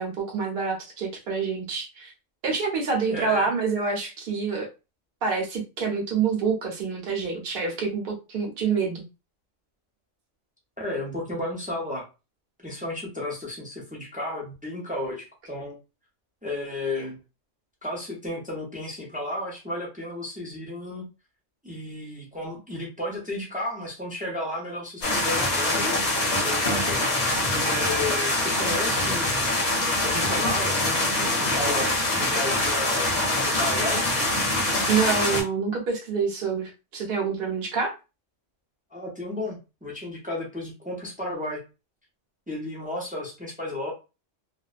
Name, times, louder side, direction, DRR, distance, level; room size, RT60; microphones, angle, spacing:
voice 1, 0.0-2.1 2.4-4.7 5.2-9.0 34.9-37.9, right 5 dB, 55° right, 0 dB, 0.9 m, -27 dB
voice 2, 3.1-3.5 10.8-12.0 12.6-15.8 16.4-17.2 17.8-21.0 21.6-27.0 27.7-29.5 30.0-33.2 33.6-34.0 38.9-41.6 42.5-43.9, left 1 dB, 10° right, -2 dB, 0.4 m, -33 dB
sound 1, 25.0-35.4, left 2 dB, 40° left, 0.8 m, -24 dB
2.5 x 2.1 x 2.3 m, 0.28 s
omnidirectional pair, 1.3 m